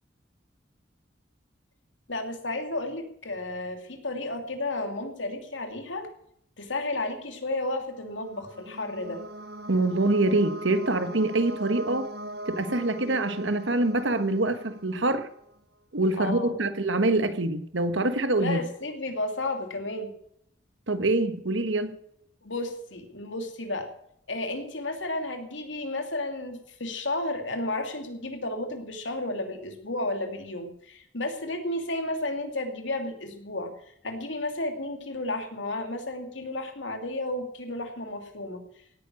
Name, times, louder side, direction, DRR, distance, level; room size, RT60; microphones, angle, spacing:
voice 1, 2.1-6.1 6.6-9.2 16.2-16.6 18.4-20.1 22.4-23.9 24.3-33.8 34.0-38.6, left 2 dB, 85° left, 2.8 m, -32 dB
sound 1, 7.8-15.5, right 1 dB, 55° right, 1.1 m, -40 dB
voice 2, 9.7-12.1 12.5-15.3 15.9-18.6 20.9-22.0, right 2 dB, 85° right, 1.4 m, -25 dB
17.0 x 9.7 x 6.4 m
head